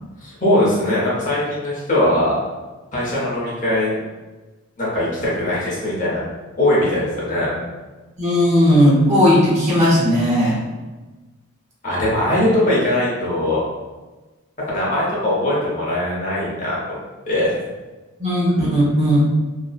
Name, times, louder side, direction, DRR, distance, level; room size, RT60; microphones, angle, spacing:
voice 1, 0.2-2.4 2.9-4.0 4.8-6.2 6.6-7.5 11.8-13.6 14.7-17.0 17.3-17.5, left 1 dB, 35° left, -7 dB, 0.7 m, -20 dB
voice 2, 8.2-10.6 18.2-19.2, equal, 30° right, -6 dB, 0.5 m, -16 dB
2.5 x 2.1 x 2.3 m, 1.2 s
head